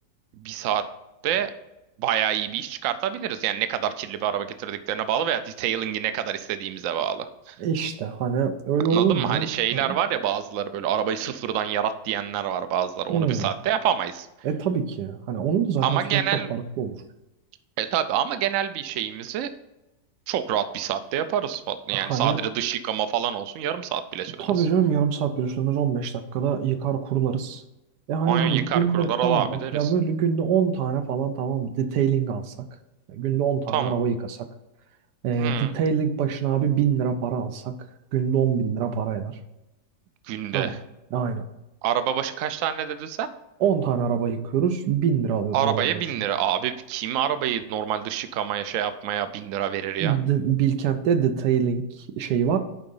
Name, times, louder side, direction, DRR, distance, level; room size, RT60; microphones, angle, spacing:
voice 1, 0.4-0.8 1.2-1.5 2.0-7.6 8.9-14.3 15.8-16.5 17.8-19.5 20.3-24.7 28.2-29.9 33.7-33.9 35.4-35.8 40.3-40.8 41.8-43.3 45.5-50.2, right 10 dB, 70° right, 11 dB, 0.8 m, -27 dB
voice 2, 7.6-10.0 13.1-13.5 14.4-17.0 21.9-22.4 24.4-27.6 28.1-32.5 33.1-34.5 35.2-37.7 38.1-39.3 40.5-40.7 41.1-41.4 43.6-46.0 50.0-52.6, right 7 dB, 85° right, 8 dB, 1.3 m, -24 dB
9.8 x 3.8 x 5.4 m, 0.96 s
omnidirectional pair, 1.7 m